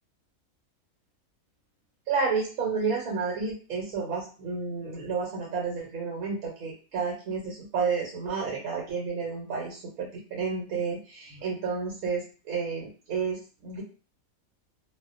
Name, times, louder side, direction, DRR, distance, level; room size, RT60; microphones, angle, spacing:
voice 1, 2.1-13.8, right 5 dB, 85° right, -3 dB, 1.1 m, -31 dB
2.3 x 2.2 x 2.4 m, 0.37 s
omnidirectional pair, 1.5 m